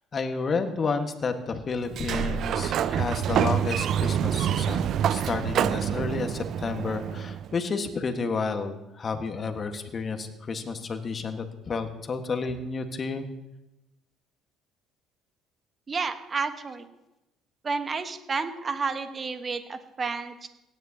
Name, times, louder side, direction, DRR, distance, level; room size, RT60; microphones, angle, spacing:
voice 1, 0.1-13.2, left 4 dB, 40° left, 6 dB, 1.6 m, -31 dB
Sliding door, 1.9-7.6, right 9 dB, 60° right, 0.4 m, -27 dB
voice 2, 15.9-16.9 17.6-20.5, right 4 dB, 35° right, 9 dB, 1.3 m, -31 dB
17.5 x 10.5 x 2.9 m, 0.94 s
hypercardioid pair, 55°, 0 cm